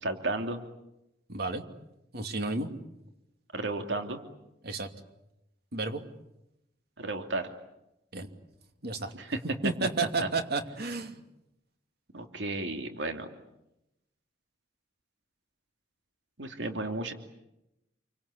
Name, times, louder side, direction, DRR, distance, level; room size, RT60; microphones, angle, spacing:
voice 1, 0.0-0.6 3.5-4.2 7.0-7.5 9.1-9.4 10.2-10.3 12.1-13.3 16.4-17.1, right 2 dB, 70° right, 6 dB, 2.8 m, -33 dB
voice 2, 1.3-1.6 2.1-2.7 4.6-4.9 5.7-6.0 8.1-8.3 8.8-9.1 9.6-11.2, right 3 dB, 55° right, 7 dB, 2.8 m, -32 dB
28.5 x 24.5 x 8.5 m, 0.88 s
head